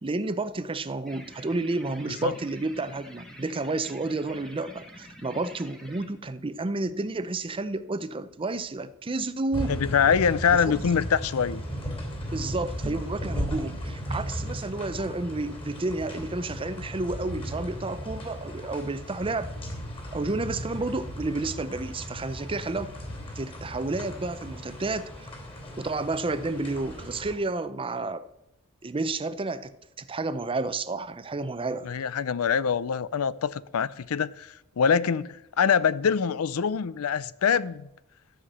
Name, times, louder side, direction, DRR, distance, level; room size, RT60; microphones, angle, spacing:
voice 1, 0.0-9.7 10.5-10.8 12.2-19.5 20.1-22.9 23.4-25.3 25.8-28.2 28.8-29.7 30.0-31.9, right 2 dB, 25° right, 0.5 m, -31 dB
sound 1, 1.1-6.1, equal, 5° left, 1.4 m, -47 dB
sound 2, 9.5-27.4, equal, 25° left, 2.8 m, -36 dB
voice 2, 9.7-11.6 31.8-37.9, left 6 dB, 80° left, 0.5 m, -24 dB
12.5 x 5.8 x 7.9 m
head